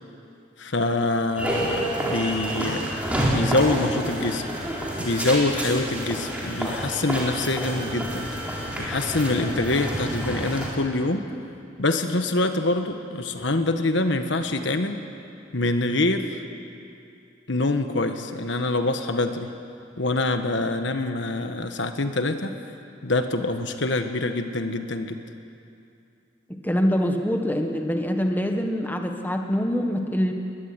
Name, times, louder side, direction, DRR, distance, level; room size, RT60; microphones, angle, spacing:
voice 1, 0.6-2.9 3.3-4.4 5.0-8.3 8.8-11.2 11.8-15.0 15.5-16.4 17.5-19.5 20.0-22.5 23.0-25.2, left 2 dB, 65° left, 7 dB, 1.4 m, -25 dB
sound 1, 1.4-10.7, equal, 5° right, 4.5 m, -28 dB
voice 2, 26.5-30.3, equal, 10° left, 4 dB, 1.6 m, -24 dB
22.5 x 20.0 x 9.7 m, 2.6 s
head